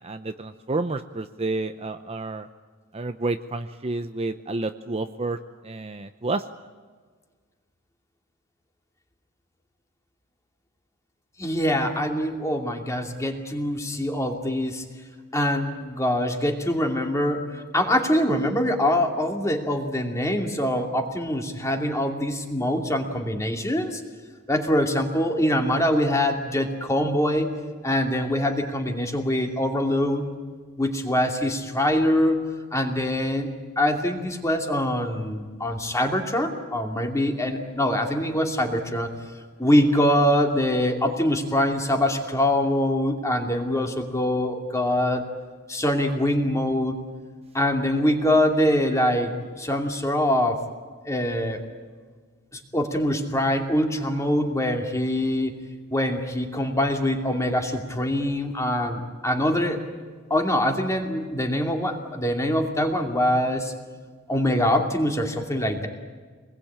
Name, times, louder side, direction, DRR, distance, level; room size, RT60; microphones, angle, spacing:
voice 1, 0.0-2.5 2.9-5.4 5.6-6.4, right 2 dB, 30° right, 8 dB, 0.7 m, -30 dB
voice 2, 11.4-14.8 15.3-24.0 24.5-27.5 27.8-30.2 30.8-32.4 32.7-33.5 33.8-39.1 39.6-45.3 45.7-47.0 47.5-50.6 51.1-51.6 52.5-55.5 55.9-59.8 60.3-63.7 64.3-65.9, left 1 dB, 15° left, 3 dB, 2.7 m, -24 dB
26.0 x 20.5 x 8.8 m, 1.5 s
head